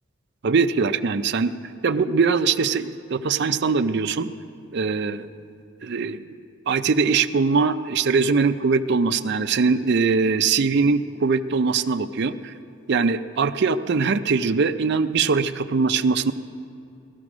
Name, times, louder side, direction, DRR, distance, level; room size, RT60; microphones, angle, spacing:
voice 1, 0.4-1.6 1.8-4.3 4.7-5.3 5.8-6.2 6.7-12.5 12.9-16.3, right 4 dB, 55° right, 9 dB, 0.5 m, -21 dB
17.0 x 13.0 x 6.1 m, 2.6 s
head